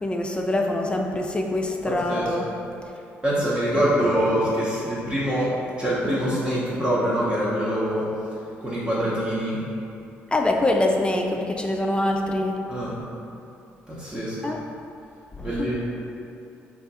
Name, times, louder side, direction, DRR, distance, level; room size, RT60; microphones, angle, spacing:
voice 1, 0.0-2.5 4.0-4.3 10.3-12.5 14.4-14.6 15.4-15.7, left 1 dB, 20° left, 2 dB, 0.4 m, -24 dB
voice 2, 1.8-2.3 3.2-5.5 5.8-8.1 8.6-9.6 12.7-12.9 13.9-14.5 15.4-15.7, equal, 20° right, -9 dB, 0.8 m, -24 dB
2.4 x 2.3 x 4.0 m, 2.6 s
hypercardioid pair, 55°, 5 cm